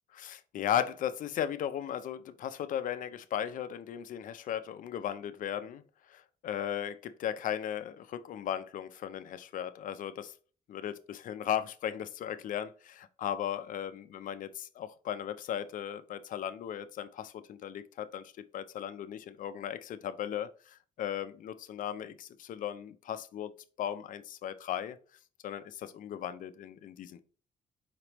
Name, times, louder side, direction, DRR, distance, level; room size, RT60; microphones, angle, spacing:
voice 1, 0.1-10.3 10.7-18.2 18.5-25.0 25.4-27.2, left 10 dB, 60° left, 0.5 m, -36 dB
5.0 x 2.9 x 3.3 m
cardioid pair, 155°, 15 cm